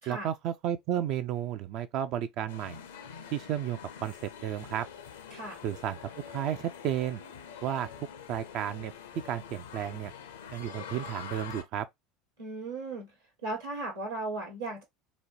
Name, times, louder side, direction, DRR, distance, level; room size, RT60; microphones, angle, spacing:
voice 1, 0.1-2.8 3.3-4.9 5.6-6.0 6.3-7.2 7.6-8.9 9.2-10.1 10.5-11.9, right 10 dB, 50° right, 0.3 m, -33 dB
sound 1, 2.5-11.6, left 7 dB, 70° left, 0.5 m, -45 dB
voice 2, 12.4-13.1 13.4-14.8, right 2 dB, 75° right, 1.1 m, -36 dB
4.0 x 2.1 x 2.9 m
figure-of-eight pair, 70°, 0 cm